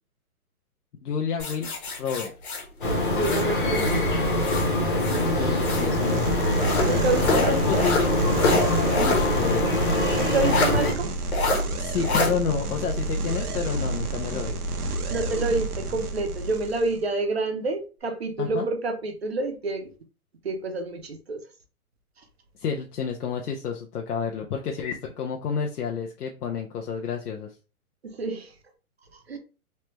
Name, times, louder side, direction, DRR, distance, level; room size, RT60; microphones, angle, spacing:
voice 1, 1.0-1.7 2.0-2.3 5.0-6.4 7.2-8.1 8.5-9.7 11.8-14.6 18.4-18.7 22.6-27.5, left 6 dB, 85° left, 0.7 m, -30 dB
sound 1, 1.4-4.0 4.4-5.9 6.6-9.3 9.6-9.7 10.4-10.7 11.3-11.6 12.0-12.3, left 2 dB, 70° left, 1.3 m, -27 dB
sound 2, 2.8-10.9, left 1 dB, 35° left, 0.7 m, -24 dB
voice 2, 3.1-4.1 6.8-7.6 10.2-11.1 15.1-19.9 20.4-21.4 28.0-28.5 29.3-29.4, right 2 dB, 45° right, 0.5 m, -28 dB
sound 3, 5.6-17.0, right 2 dB, 80° right, 0.8 m, -30 dB
3.2 x 2.2 x 3.0 m
hypercardioid pair, 180°, 45 cm